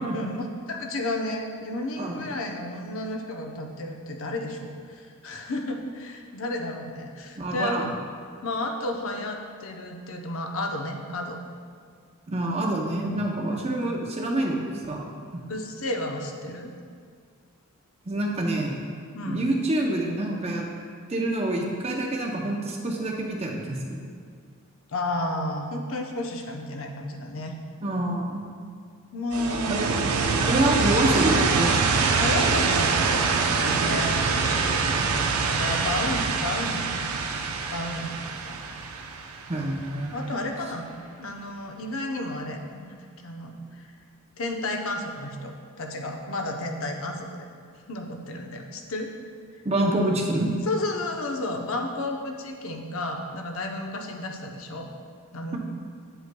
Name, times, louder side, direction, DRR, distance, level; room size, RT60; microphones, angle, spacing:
voice 1, 0.1-7.9 8.4-11.4 13.5-13.7 15.5-16.7 19.1-19.5 24.9-27.5 29.1-30.2 30.6-30.8 32.2-34.9 35.4-37.4 37.7-38.6 40.1-40.9 41.2-42.9 43.2-43.9 44.4-47.4 47.9-49.1 50.6-54.9 55.3-55.6, left 1 dB, 65° left, 3 dB, 0.7 m, -32 dB
voice 2, 7.4-7.9 12.3-15.1 15.3-15.4 18.1-18.8 19.3-20.7 21.1-24.0 27.8-28.4 29.7-29.9 30.4-32.0 39.5-40.1 49.6-50.5, right 1 dB, 30° right, -1 dB, 0.6 m, -26 dB
sound 1, 29.3-40.0, right 4 dB, 80° right, 0.6 m, -24 dB
9.2 x 7.9 x 2.2 m, 2.1 s
head